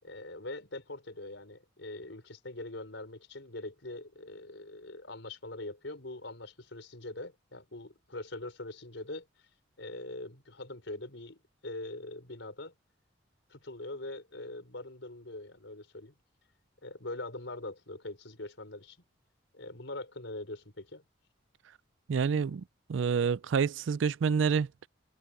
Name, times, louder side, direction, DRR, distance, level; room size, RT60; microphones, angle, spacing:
voice 1, 0.0-9.3 9.8-12.7 13.5-16.1 16.8-19.0 19.5-21.0, left 2 dB, 75° left, 4.5 m, -42 dB
voice 2, 22.1-22.6 22.9-24.9, right 6 dB, 80° right, 0.4 m, -28 dB
head